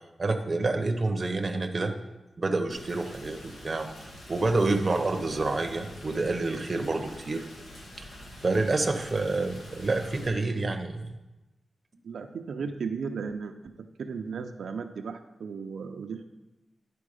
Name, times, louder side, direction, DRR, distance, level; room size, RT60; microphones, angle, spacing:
voice 1, 0.2-2.0 2.4-3.9 4.3-7.4 8.4-11.1, right 3 dB, 30° right, 5 dB, 0.7 m, -28 dB
Rain, 2.7-10.3, left 1 dB, 85° left, 1.8 m, -46 dB
voice 2, 12.0-13.5 14.0-16.3, right 5 dB, 90° right, 5 dB, 0.5 m, -35 dB
10.5 x 4.6 x 4.9 m, 1.0 s
wide cardioid pair, 160°, 0 cm